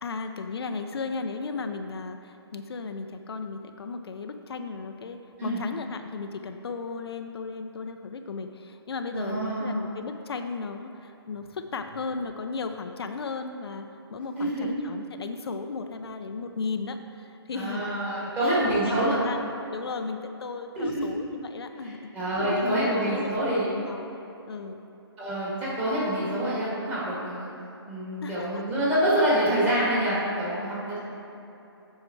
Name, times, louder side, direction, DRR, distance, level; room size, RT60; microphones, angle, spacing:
voice 1, 0.0-17.9 18.2-22.1 22.4-23.3 23.7-24.1 24.5-24.8 28.2-28.6, left 4 dB, 65° left, 6 dB, 0.5 m, -35 dB
voice 2, 9.1-9.8 14.4-14.7 17.5-19.2 20.8-21.0 21.8-23.7 25.2-27.5 27.9-31.0, right 1 dB, 10° right, -8 dB, 1.7 m, -26 dB
7.9 x 5.8 x 4.5 m, 3.0 s
hypercardioid pair, 160°, 14 cm